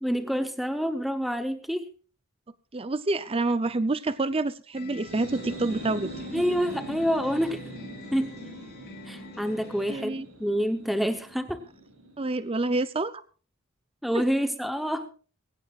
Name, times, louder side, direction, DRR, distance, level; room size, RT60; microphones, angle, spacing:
voice 1, 0.0-1.9 6.3-7.6 8.1-8.4 9.1-11.6 14.0-15.1, equal, ahead, 7 dB, 0.9 m, -27 dB
voice 2, 2.7-6.1 9.9-10.3 12.2-13.2 14.1-14.2, right 2 dB, 25° right, 13 dB, 0.6 m, -27 dB
sound 1, 4.7-10.0, left 2 dB, 50° left, 3.7 m, -45 dB
sound 2, 4.9-12.5, right 1 dB, 70° right, 5.5 m, -42 dB
22.5 x 16.5 x 2.5 m, 0.38 s
head